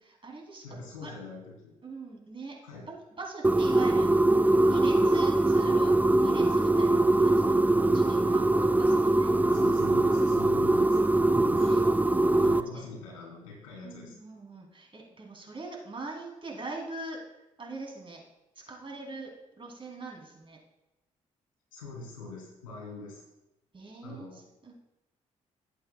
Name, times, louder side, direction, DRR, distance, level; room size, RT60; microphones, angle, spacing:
voice 1, 0.0-1.2 1.8-2.5 2.9-4.1 4.6-9.7 11.6-12.9 13.8-17.2 17.6-18.2 18.7-20.6 23.7-24.7, right 3 dB, 30° right, -1 dB, 3.0 m, -43 dB
voice 2, 0.6-1.7 2.6-2.9 9.5-11.1 11.5-11.9 12.4-14.2 21.7-23.2 24.0-24.5, left 3 dB, 80° left, -2 dB, 3.3 m, -44 dB
sound 1, 3.4-12.6, right 2 dB, 10° right, 0.5 m, -22 dB
16.0 x 7.8 x 2.3 m, 0.94 s
hypercardioid pair, 40°, 17 cm